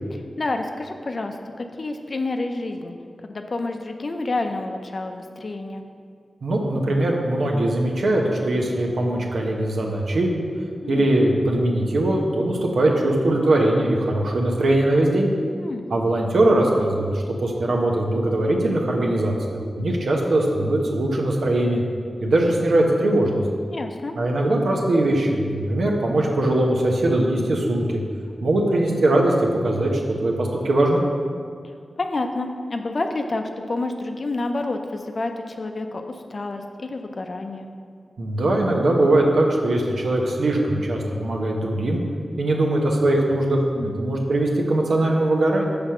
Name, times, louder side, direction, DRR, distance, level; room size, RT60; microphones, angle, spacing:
voice 1, 0.1-2.9 3.2-5.8 10.8-11.1 15.6-15.8 23.7-24.1 32.0-37.7 43.7-44.0, left 2 dB, 55° left, 5 dB, 0.5 m, -29 dB
voice 2, 6.4-10.4 10.9-15.3 15.9-17.1 17.4-21.8 22.2-23.4 24.2-27.9 28.4-29.3 29.6-31.0 38.2-42.0 42.4-45.7, right 1 dB, 85° right, 0 dB, 0.8 m, -21 dB
5.9 x 3.4 x 5.6 m, 2.1 s
cardioid pair, 65°, 0 cm